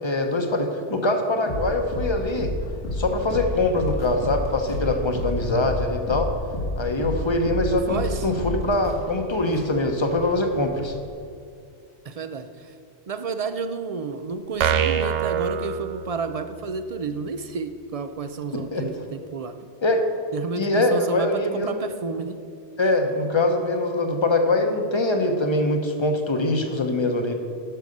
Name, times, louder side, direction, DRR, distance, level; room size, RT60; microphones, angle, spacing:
voice 1, 0.0-2.5 2.9-6.3 6.8-10.9 18.5-18.8 19.8-20.0 20.6-21.8 22.8-27.3, left 2 dB, 25° left, 5 dB, 0.9 m, -23 dB
sound 1, 1.5-11.1, left 1 dB, 90° left, 2.2 m, -31 dB
voice 2, 7.7-8.3 12.0-12.7 13.1-19.6 20.3-22.4, right 4 dB, 55° right, 10 dB, 0.4 m, -31 dB
sound 2, 14.6-16.5, right 8 dB, 90° right, 0.9 m, -24 dB
11.0 x 6.4 x 5.3 m, 2.4 s
omnidirectional pair, 1.2 m